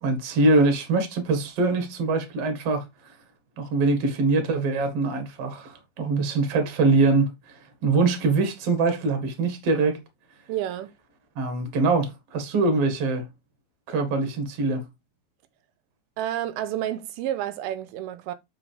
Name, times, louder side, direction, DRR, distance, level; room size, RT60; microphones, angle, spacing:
voice 1, 0.0-3.1 3.6-10.0 11.4-13.3 13.9-14.8, right 3 dB, 50° right, 2.3 m, -23 dB
voice 2, 10.5-10.9 16.2-18.3, right 12 dB, 85° right, 2.5 m, -30 dB
7.2 x 5.6 x 3.3 m
omnidirectional pair, 4.3 m